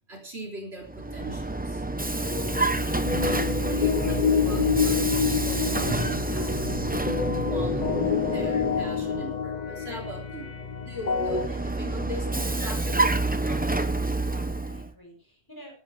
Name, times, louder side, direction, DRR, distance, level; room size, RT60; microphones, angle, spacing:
voice 1, 0.1-1.8 3.2-7.0 7.3-13.8, right 1 dB, 65° right, 1 dB, 4.0 m, -40 dB
Vehicle, 0.8-9.3 11.0-14.9, right 2 dB, 10° right, 0.8 m, -28 dB
sound 1, 2.3-11.5, left 6 dB, 40° left, 0.9 m, -28 dB
Acoustic guitar, 5.1-10.1, left 1 dB, 45° right, 6.9 m, -55 dB
voice 2, 13.9-15.7, equal, 20° left, 1 dB, 6.2 m, -49 dB
17.0 x 14.5 x 3.4 m, 0.35 s
omnidirectional pair, 1.2 m